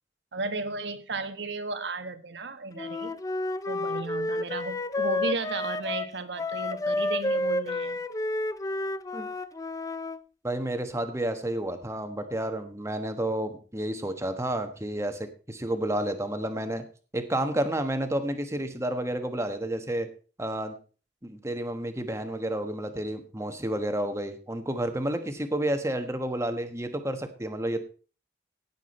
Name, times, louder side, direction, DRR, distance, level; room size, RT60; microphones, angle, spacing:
voice 1, 0.3-3.1 3.7-8.0, right 3 dB, 80° right, 10 dB, 1.4 m, -34 dB
Wind instrument woodwind instrument, 2.8-10.2, left 2 dB, 20° left, 0.5 m, -30 dB
voice 2, 10.4-16.8 17.1-20.1 20.4-20.7 21.2-27.8, right 1 dB, 15° right, 7 dB, 1.3 m, -30 dB
17.5 x 7.3 x 4.3 m, 0.37 s
head